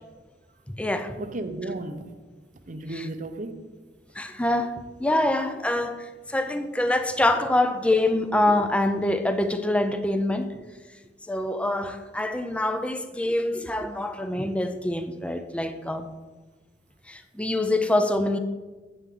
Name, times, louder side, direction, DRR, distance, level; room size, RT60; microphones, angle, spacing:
voice 1, 0.7-1.2 2.9-3.1 4.2-10.5 11.3-16.1 17.1-18.4, left 1 dB, 5° left, 0.5 m, -25 dB
voice 2, 1.2-2.1 2.7-3.7, right 2 dB, 50° right, 0.7 m, -34 dB
9.2 x 8.1 x 3.7 m
head